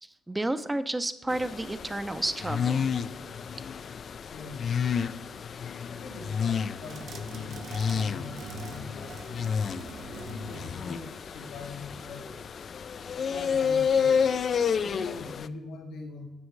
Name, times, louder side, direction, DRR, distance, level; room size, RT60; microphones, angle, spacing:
voice 1, 0.0-2.9, right 1 dB, 15° right, 12 dB, 0.5 m, -31 dB
sound 1, 1.3-15.5, left 6 dB, 50° left, 0.3 m, -30 dB
voice 2, 4.2-4.7 5.9-9.4 10.1-12.4 13.1-14.3 14.8-16.3, left 3 dB, 85° left, 1 dB, 1.3 m, -43 dB
sound 2, 6.8-11.8, right 5 dB, 65° right, 0.6 m, -45 dB
9.7 x 7.1 x 3.2 m, 0.94 s
cardioid pair, 90°, 0 cm